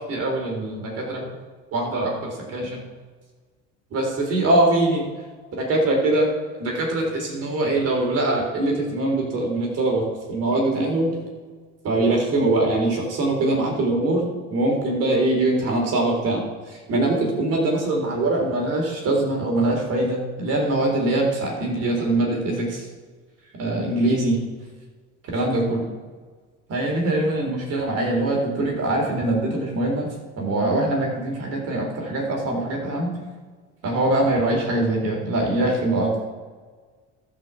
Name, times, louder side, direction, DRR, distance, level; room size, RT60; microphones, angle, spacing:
voice 1, 0.1-1.3 1.7-2.7 3.9-5.0 5.7-6.3 6.6-11.1 11.8-16.4 16.9-22.7 23.6-24.4 25.3-25.8 26.7-30.1 30.4-33.1 33.8-36.2, right 2 dB, 45° right, 0 dB, 3.9 m, -22 dB
13.0 x 5.9 x 7.1 m, 1.5 s
cardioid pair, 125°, 33 cm